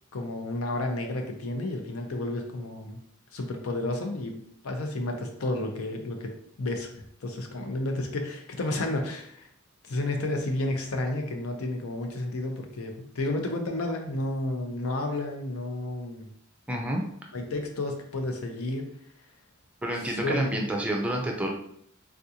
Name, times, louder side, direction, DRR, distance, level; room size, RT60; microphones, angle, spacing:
voice 1, 0.1-3.0 3.3-6.3 6.6-9.5 9.8-16.3 17.3-19.0 20.1-20.7, left 2 dB, 80° left, 3 dB, 0.6 m, -31 dB
voice 2, 16.7-17.0 19.8-21.5, right 1 dB, 5° right, 0 dB, 0.4 m, -29 dB
3.5 x 2.4 x 2.8 m, 0.68 s
head